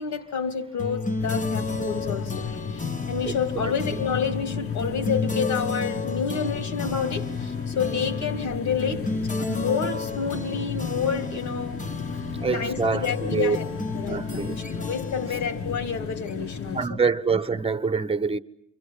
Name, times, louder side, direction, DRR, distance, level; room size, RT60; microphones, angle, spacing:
voice 1, 0.0-11.8 12.2-13.7 14.0-17.0, left 6 dB, 70° left, 2.8 m, -29 dB
sound 1, 0.8-16.7, left 3 dB, 25° left, 1.5 m, -32 dB
sound 2, 1.2-16.9, left 5 dB, 45° left, 1.7 m, -35 dB
voice 2, 12.4-13.6 14.1-14.5 16.7-18.4, right 5 dB, 20° right, 1.2 m, -25 dB
28.5 x 24.5 x 8.5 m
cardioid pair, 90°, 30 cm